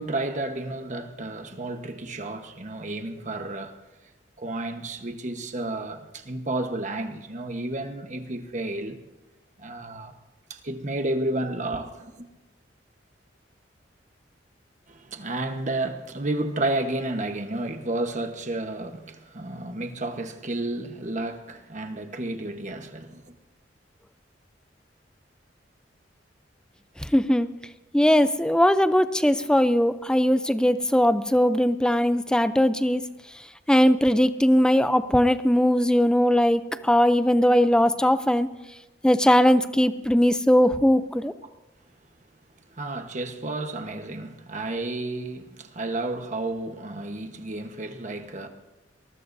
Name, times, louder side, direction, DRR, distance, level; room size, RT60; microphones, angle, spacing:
voice 1, 0.0-3.8 4.4-9.0 9.6-10.1 10.5-12.3 14.9-23.3 42.7-48.5, right 2 dB, 40° right, 1.2 m, -31 dB
voice 2, 27.0-27.5 27.9-33.0 33.7-38.5 39.0-41.3, equal, 5° left, 0.5 m, -20 dB
22.5 x 20.0 x 2.7 m
head